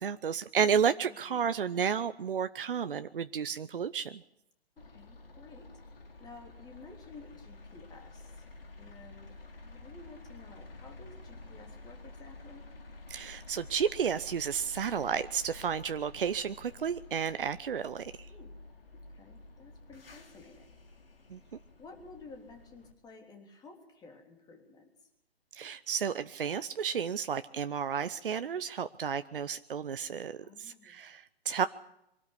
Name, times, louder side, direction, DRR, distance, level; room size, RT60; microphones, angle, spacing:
voice 1, 0.0-4.2 13.1-18.3 21.3-21.4 25.5-31.7, right 7 dB, 60° right, 12 dB, 0.8 m, -32 dB
voice 2, 1.1-1.5 4.9-5.7 6.2-8.4 8.8-12.6 18.2-18.5 19.1-20.7 21.7-24.9 30.4-31.1, left 3 dB, 10° left, 3 dB, 3.4 m, -53 dB
sound 1, 4.8-22.9, left 2 dB, 65° left, 3.3 m, -51 dB
24.0 x 13.0 x 10.0 m, 0.80 s
figure-of-eight pair, 125°, 31 cm